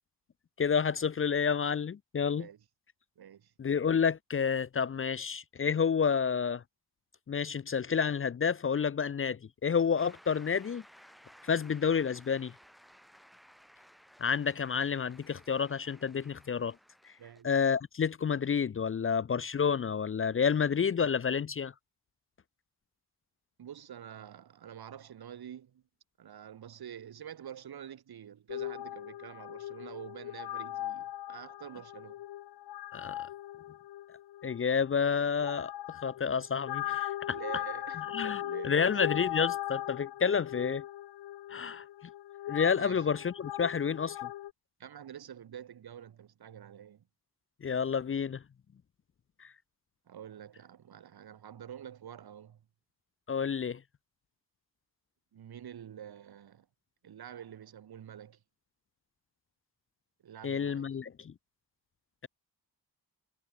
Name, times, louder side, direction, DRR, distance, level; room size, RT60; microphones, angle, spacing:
voice 1, 0.6-2.5 3.6-6.6 7.3-10.8 11.4-12.5 14.2-16.8 17.0-17.1 17.4-21.7 32.9-33.2 34.4-35.7 36.0-37.3 38.1-40.8 41.5-41.8 42.5-44.3 47.6-48.4 49.4-49.5 53.3-53.8 60.4-61.3, left 6 dB, 35° left, 0.6 m, -29 dB
voice 2, 3.2-3.5 17.2-17.5 23.6-25.8 26.2-32.2 37.3-39.0 42.8-43.1 44.8-47.0 50.1-52.6 55.3-56.6 57.0-58.4 60.2-60.8, right 9 dB, 70° right, 3.4 m, -47 dB
Shout / Cheering / Applause, 10.0-17.4, equal, ahead, 2.6 m, -58 dB
sound 1, 28.5-44.5, left 13 dB, 90° left, 1.5 m, -39 dB
cardioid pair, 70°, 39 cm